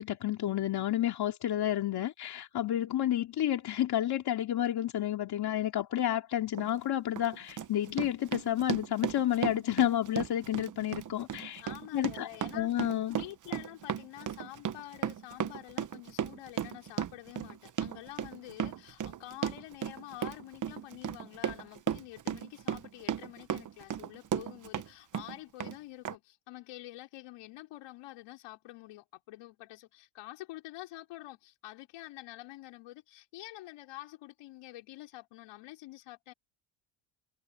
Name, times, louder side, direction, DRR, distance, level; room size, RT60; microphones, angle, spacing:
voice 1, 0.0-11.6 11.9-12.3 12.5-13.2, left 12 dB, 50° left, 2.8 m, -30 dB
Run, 6.5-6.7 7.2-24.9 25.1-25.8 26.0-26.1, right 9 dB, 35° right, 1.0 m, -35 dB
voice 2, 11.6-12.7 13.1-36.3, left 17 dB, 80° left, 4.9 m, -47 dB
cardioid pair, 135°, 50 cm